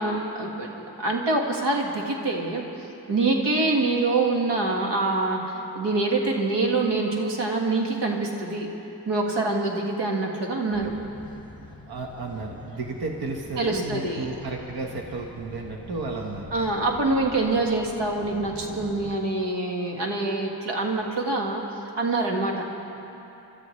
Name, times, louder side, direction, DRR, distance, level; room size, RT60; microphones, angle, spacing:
voice 1, 0.0-2.6 3.1-8.7 9.1-10.9 13.6-14.3 16.5-21.6 22.0-22.6, right 2 dB, 90° right, 0 dB, 1.8 m, -25 dB
sound 1, 10.7-19.1, left 2 dB, 10° left, 1.3 m, -45 dB
voice 2, 11.9-16.5, right 3 dB, 60° right, 0 dB, 1.3 m, -33 dB
29.5 x 13.0 x 3.2 m, 3.0 s
wide cardioid pair, 130°, 41 cm